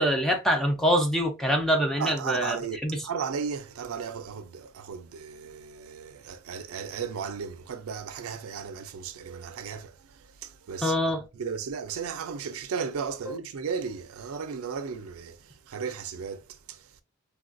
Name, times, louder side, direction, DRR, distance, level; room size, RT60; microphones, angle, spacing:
voice 1, 0.0-3.0 10.8-11.2 13.3-13.4, equal, ahead, 0.6 m, -25 dB
voice 2, 2.0-2.8 3.0-10.9 11.4-17.0, right 6 dB, 80° right, 0.4 m, -35 dB
3.4 x 2.4 x 2.5 m
head